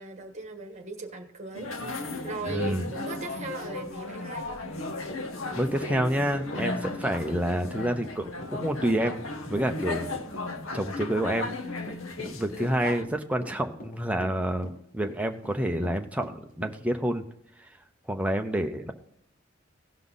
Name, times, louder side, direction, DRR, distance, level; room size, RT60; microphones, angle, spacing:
voice 1, 0.0-1.7 2.2-4.5, right 3 dB, 35° right, 5 dB, 1.5 m, -38 dB
sound 1, 1.5-13.0, left 2 dB, 85° left, 1.0 m, -35 dB
voice 2, 2.5-2.9 5.5-9.2 9.5-10.2 10.7-11.9 12.2-17.2 18.1-18.9, right 1 dB, 5° right, 4 dB, 0.8 m, -28 dB
Run / Walk footsteps, 5.1-16.8, equal, 40° left, 1.3 m, -43 dB
16.5 x 5.6 x 4.0 m, 0.69 s
head